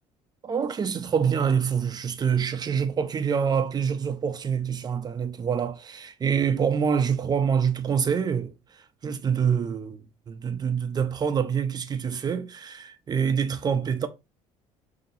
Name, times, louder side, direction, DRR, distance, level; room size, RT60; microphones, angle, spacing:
voice 1, 0.4-8.5 9.0-14.1, right 7 dB, 30° right, 0.6 m, -26 dB
5.5 x 2.8 x 2.7 m
cardioid pair, 110°, 13 cm